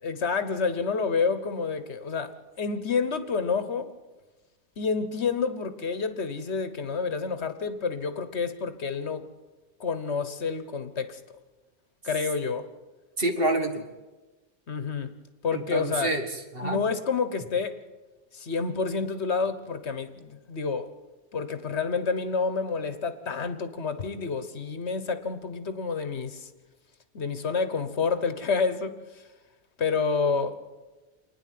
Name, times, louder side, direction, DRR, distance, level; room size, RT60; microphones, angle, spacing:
voice 1, 0.0-3.9 4.8-9.3 9.8-11.2 12.0-12.7 14.7-15.1 15.4-16.1 16.6-17.8 18.3-20.9 21.3-26.5 27.1-29.0 29.8-30.6, left 5 dB, 75° left, 1.5 m, -29 dB
voice 2, 13.2-13.9 15.5-16.9, right 1 dB, 55° right, 2.1 m, -28 dB
27.0 x 10.0 x 9.4 m
omnidirectional pair, 1.1 m